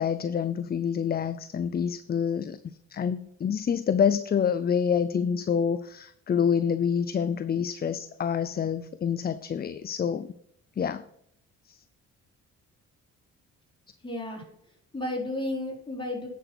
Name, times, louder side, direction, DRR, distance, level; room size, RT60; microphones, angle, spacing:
voice 1, 0.0-10.3 10.8-11.0 11.7-11.8, left 7 dB, 30° left, 13 dB, 0.5 m, -27 dB
voice 2, 14.0-16.3, left 1 dB, 15° left, -1 dB, 4.2 m, -33 dB
10.0 x 6.1 x 6.1 m, 0.73 s
cardioid pair, 90°, 30 cm